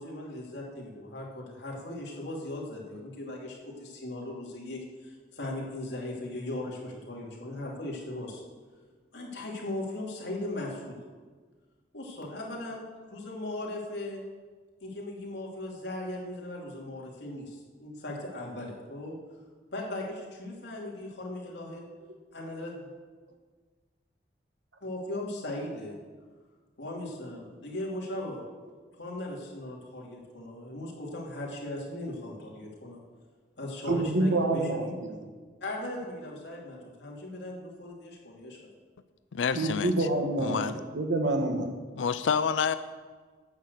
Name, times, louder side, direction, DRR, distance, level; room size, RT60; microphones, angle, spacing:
voice 1, 0.0-8.4 9.1-11.0 11.9-12.8 13.1-14.2 14.8-19.2 19.7-21.9 22.3-22.9 24.8-26.0 26.8-28.4 29.0-33.0 33.6-35.0 35.6-38.7, left 1 dB, 70° left, -2 dB, 2.6 m, -38 dB
voice 2, 33.9-35.3 39.5-41.7, right 2 dB, 80° right, 3 dB, 1.5 m, -27 dB
voice 3, 39.3-40.1 40.4-40.7 42.0-42.7, left 6 dB, 90° left, 13 dB, 0.4 m, -28 dB
9.3 x 6.6 x 8.1 m, 1.4 s
head